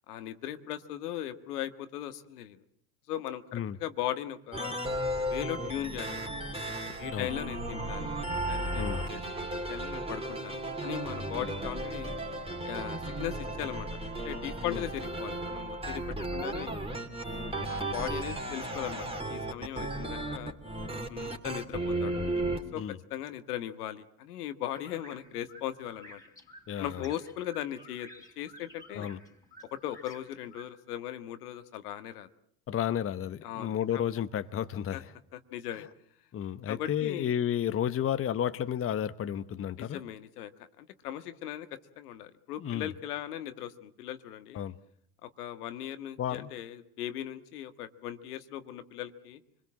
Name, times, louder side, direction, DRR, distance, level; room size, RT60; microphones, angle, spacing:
voice 1, 0.1-2.6 3.1-4.8 5.3-6.3 7.0-10.6 10.8-12.1 12.6-13.9 14.2-16.0 16.3-16.8 17.3-20.5 21.1-22.2 22.7-22.8 23.1-26.2 26.8-28.1 28.4-29.1 29.7-32.3 33.4-34.0 34.9-35.0 35.3-35.8 36.7-37.3 39.8-40.5 40.8-44.6 45.2-49.4, left 11 dB, 85° left, 10 dB, 1.7 m, -38 dB
sound 1, 4.5-22.6, right 1 dB, 10° right, 3.2 m, -35 dB
sound 2, 24.6-30.7, left 1 dB, 10° left, 4.0 m, -53 dB
voice 2, 26.7-27.1 28.9-29.2 32.7-35.1 36.3-40.0 42.6-42.9 44.5-44.7 46.2-46.5, left 10 dB, 30° left, 12 dB, 1.0 m, -32 dB
25.5 x 21.0 x 7.5 m, 0.65 s
hypercardioid pair, 90°, 45 cm